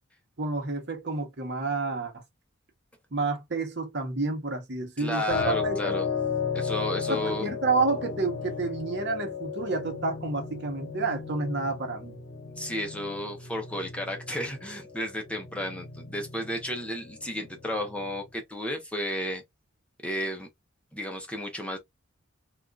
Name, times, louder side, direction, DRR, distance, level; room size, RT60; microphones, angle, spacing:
voice 1, 0.4-2.1 3.1-6.0 7.1-12.1, right 3 dB, 55° right, 1.0 m, -29 dB
voice 2, 5.0-6.1 6.5-7.5 12.6-19.4 20.0-20.5 20.9-21.8, left 1 dB, 5° left, 0.7 m, -33 dB
sound 1, 5.3-18.3, left 6 dB, 65° left, 0.9 m, -35 dB
3.5 x 2.5 x 2.3 m
head